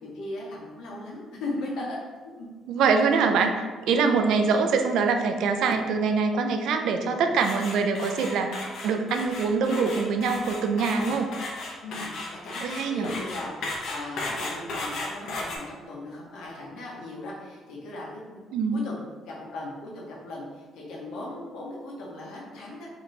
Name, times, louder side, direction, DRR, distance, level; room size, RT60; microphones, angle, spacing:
voice 1, 0.0-2.0 2.4-2.5 3.8-4.2 7.1-7.5 11.0-11.3 11.8-18.4 18.7-22.9, left 2 dB, 85° left, -3 dB, 1.0 m, -38 dB
voice 2, 2.7-11.3 12.6-13.1 18.5-18.8, right 5 dB, 80° right, 6 dB, 0.4 m, -24 dB
sound 1, 7.4-15.6, left 2 dB, 65° left, 0.8 m, -35 dB
4.1 x 2.9 x 3.2 m, 1.4 s
cardioid pair, 140°, 0 cm